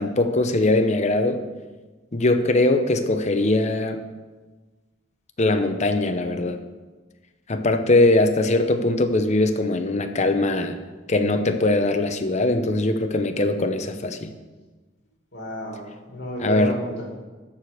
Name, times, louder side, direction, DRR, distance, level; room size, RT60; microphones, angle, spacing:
voice 1, 0.0-1.4 2.1-4.0 5.4-6.6 7.5-10.8 11.1-14.3 16.4-16.7, left 2 dB, 40° left, 7 dB, 0.8 m, -21 dB
voice 2, 15.3-17.0, equal, 60° left, -2 dB, 2.4 m, -31 dB
13.0 x 4.9 x 6.6 m, 1.3 s
head